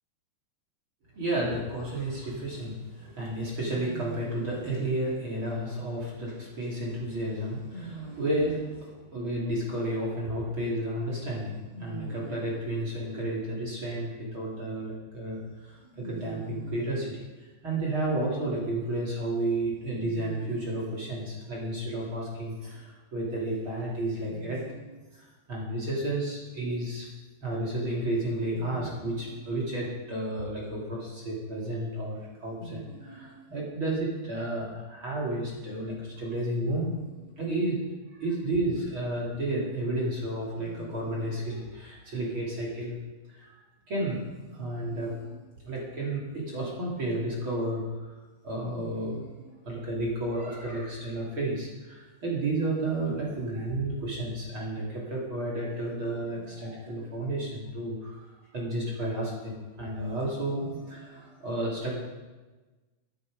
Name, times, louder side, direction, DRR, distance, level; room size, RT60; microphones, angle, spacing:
voice 1, 1.1-17.2 17.6-27.1 27.4-37.8 38.1-43.0 43.3-43.6 43.9-44.2 44.4-45.4 45.6-48.2 48.4-58.3 58.5-62.0, right 1 dB, 30° right, -4 dB, 3.0 m, -32 dB
13.0 x 11.5 x 5.3 m, 1.2 s
omnidirectional pair, 5.4 m